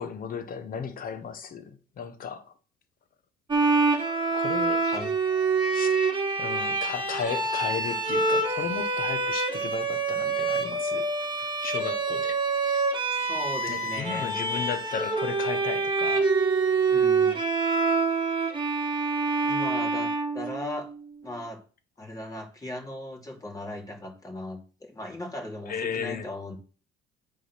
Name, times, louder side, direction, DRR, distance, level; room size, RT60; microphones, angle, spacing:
voice 1, 0.0-2.5 4.3-4.8 5.7-6.0 6.4-11.1 11.4-12.8 13.7-16.3 25.7-26.3, left 6 dB, 45° left, 1.3 m, -35 dB
Bowed string instrument, 3.5-20.9, right 3 dB, 25° right, 1.8 m, -26 dB
voice 2, 13.2-14.4 16.9-17.4 19.4-20.9 21.2-21.6 22.0-26.6, left 1 dB, 20° left, 2.7 m, -37 dB
8.2 x 3.9 x 6.0 m
supercardioid pair, 85°, 20 cm